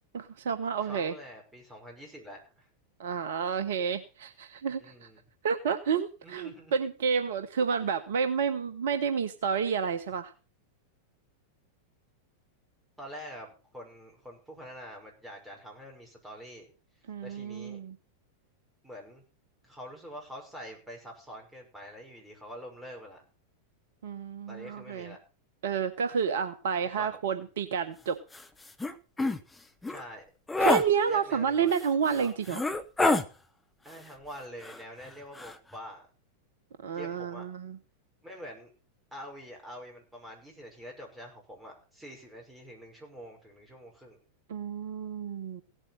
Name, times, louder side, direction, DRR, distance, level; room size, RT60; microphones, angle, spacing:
voice 1, 0.1-1.1 3.0-4.9 5.4-10.3 17.1-17.9 24.0-25.1 25.6-28.2 30.6-32.6 36.8-37.8 44.5-45.6, right 6 dB, 60° right, 11 dB, 1.0 m, -30 dB
voice 2, 0.8-2.7 4.8-5.2 6.2-6.7 7.7-7.8 13.0-16.7 17.2-17.8 18.8-19.2 19.6-23.2 24.5-25.2 27.0-27.4 29.9-30.2 30.5-30.8 31.1-31.7 32.1-32.3 33.8-36.1 36.9-37.4 38.2-38.7 39.1-44.2, equal, 10° right, 0 dB, 5.8 m, -46 dB
sound 1, 28.3-28.4 28.8-28.9 29.2-29.4 29.8-30.0 30.5-30.8 31.8-31.9 32.5-33.3 34.6-35.1 35.4-35.5, left 2 dB, 10° left, 1.0 m, -26 dB
16.5 x 8.2 x 5.7 m, 0.35 s
figure-of-eight pair, 90°, 0 cm